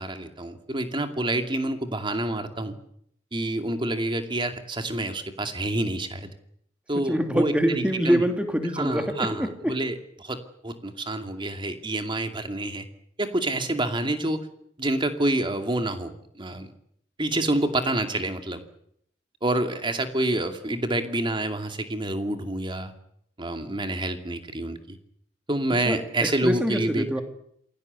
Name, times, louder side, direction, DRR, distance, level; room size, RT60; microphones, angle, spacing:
voice 1, 0.0-2.8 3.3-6.3 6.9-8.2 8.8-10.4 10.6-12.9 13.2-14.4 14.8-16.7 17.2-18.6 19.4-22.9 23.4-25.0 25.5-27.1, right 1 dB, 25° right, 6 dB, 2.4 m, -28 dB
voice 2, 7.1-9.7 25.8-27.2, equal, 5° right, 5 dB, 2.8 m, -25 dB
27.5 x 17.5 x 8.3 m, 0.70 s
head